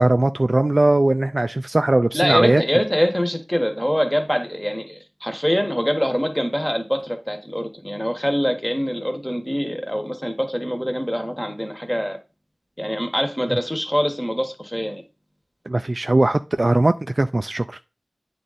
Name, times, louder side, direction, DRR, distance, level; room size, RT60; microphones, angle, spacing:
voice 1, 0.0-2.6 15.7-17.8, right 2 dB, 40° right, 0.3 m, -19 dB
voice 2, 2.1-12.2 12.8-15.0, equal, 10° left, 1.3 m, -24 dB
9.0 x 3.7 x 4.1 m
wide cardioid pair, 75°, 0 cm